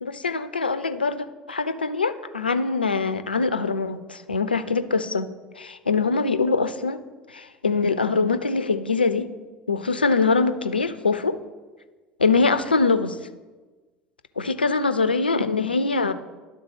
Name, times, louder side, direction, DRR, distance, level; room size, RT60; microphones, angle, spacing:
voice 1, 0.0-5.3 5.6-7.0 7.3-9.3 9.7-11.4 12.2-13.2 14.4-16.1, left 4 dB, 85° left, 12 dB, 0.3 m, -23 dB
11.0 x 3.9 x 5.4 m, 1.3 s
figure-of-eight pair, 65°, 5 cm